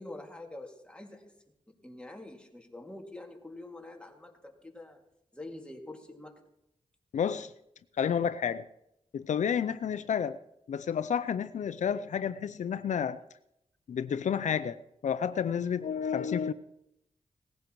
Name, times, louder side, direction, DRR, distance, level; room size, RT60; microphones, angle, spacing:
voice 1, 0.0-1.3 1.7-5.0 5.3-6.4, left 2 dB, 10° left, 1 dB, 2.3 m, -46 dB
voice 2, 7.1-7.5 8.0-8.6 9.1-10.4 10.7-13.2 13.9-16.5, left 7 dB, 85° left, 13 dB, 0.5 m, -30 dB
18.0 x 15.5 x 3.1 m, 0.81 s
wide cardioid pair, 80°, 12 cm